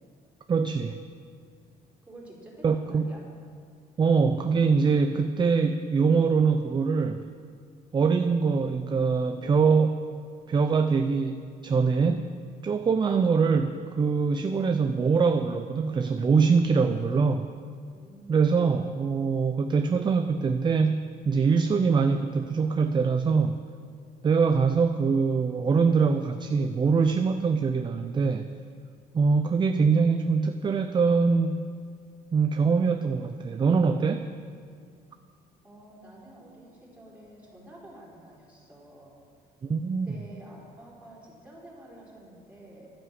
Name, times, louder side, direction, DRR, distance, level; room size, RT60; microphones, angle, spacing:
voice 1, 0.5-1.0 2.6-3.1 4.0-7.2 7.9-10.0 10.5-12.3 12.6-17.5 18.3-23.6 24.2-28.5 29.1-31.7 32.3-34.3 39.6-40.1, right 5 dB, 25° right, 8 dB, 0.6 m, -23 dB
voice 2, 2.0-3.2 17.9-18.5 35.6-39.2 40.0-42.9, right 1 dB, 10° right, -4 dB, 4.3 m, -49 dB
11.5 x 9.5 x 7.5 m, 2.1 s
cardioid pair, 110°, 17 cm